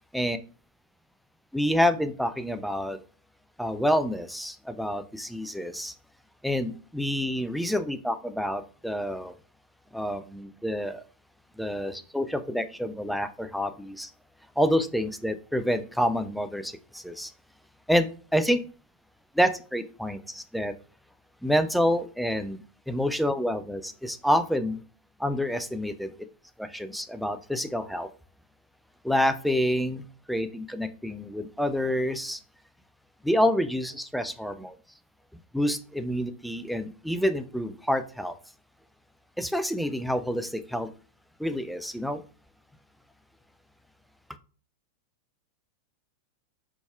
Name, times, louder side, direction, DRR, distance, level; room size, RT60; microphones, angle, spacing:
voice 1, 1.5-3.0 3.6-5.9 6.4-9.3 9.9-11.0 11.6-14.1 14.6-17.3 17.9-18.6 19.3-20.7 21.4-24.8 25.2-26.1 26.6-28.1 29.0-32.4 33.2-34.8 35.5-38.4 39.4-40.9 41.4-42.2, equal, ahead, 0.3 m, -28 dB
4.0 x 3.5 x 2.2 m
figure-of-eight pair, 90°, 0 cm